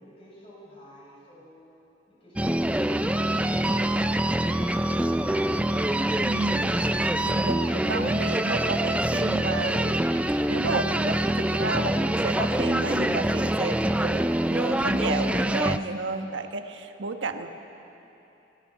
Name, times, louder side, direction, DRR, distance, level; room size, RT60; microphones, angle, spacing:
voice 1, 0.0-1.6 2.1-4.0, equal, 30° left, -5 dB, 7.2 m, -49 dB
sound 1, 2.4-15.8, right 1 dB, 5° right, 0.4 m, -25 dB
voice 2, 6.2-10.1 10.5-17.5, right 3 dB, 80° right, 6 dB, 1.3 m, -32 dB
27.5 x 19.0 x 6.0 m, 3.0 s
head